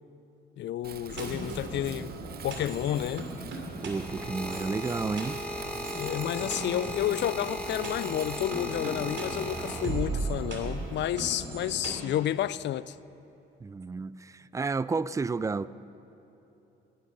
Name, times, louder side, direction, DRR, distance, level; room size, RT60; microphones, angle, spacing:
voice 1, 0.6-3.3 4.4-4.5 5.9-13.0, left 12 dB, 65° left, 0.4 m, -31 dB
Wind, 0.8-9.7, right 8 dB, 50° right, 0.7 m, -45 dB
sound 1, 1.1-11.9, right 3 dB, 70° right, 2.6 m, -38 dB
sound 2, 3.5-10.3 11.1-11.5, left 1 dB, 5° left, 1.8 m, -37 dB
voice 2, 3.8-5.4 13.6-15.7, right 4 dB, 15° right, 0.3 m, -31 dB
20.5 x 9.7 x 6.5 m
cardioid pair, 90°, 20 cm